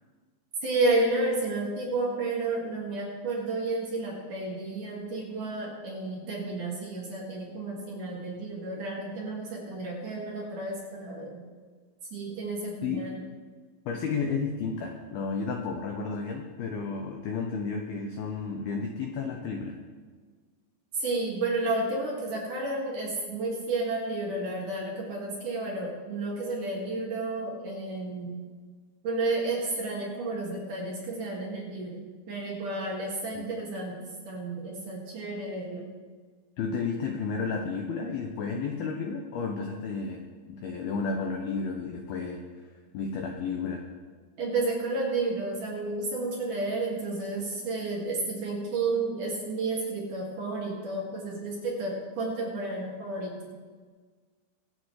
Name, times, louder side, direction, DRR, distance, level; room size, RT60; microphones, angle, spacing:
voice 1, 0.6-11.4 12.1-13.2 21.0-28.4 29.0-32.0 32.3-35.9 44.4-53.3, right 2 dB, 55° right, -3 dB, 2.7 m, -31 dB
voice 2, 13.9-19.8 33.3-33.5 36.6-42.4 42.9-43.8, left 5 dB, 85° left, 3 dB, 2.1 m, -32 dB
23.0 x 8.8 x 3.2 m, 1.5 s
omnidirectional pair, 5.6 m